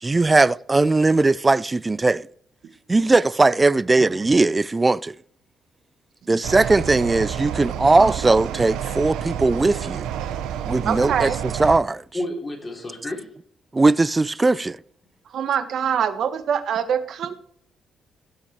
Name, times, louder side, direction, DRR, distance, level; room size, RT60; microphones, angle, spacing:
voice 1, 0.0-2.3 2.9-5.2 6.3-10.0 10.6-12.0 13.7-14.8, right 3 dB, 20° right, 0.4 m, -19 dB
sound 1, 6.4-11.8, right 9 dB, 90° right, 0.8 m, -29 dB
voice 2, 10.8-11.4 15.3-17.4, right 8 dB, 65° right, 1.3 m, -24 dB
voice 3, 12.1-13.3, left 1 dB, 25° left, 3.4 m, -31 dB
17.0 x 5.9 x 4.3 m
cardioid pair, 90°, 0 cm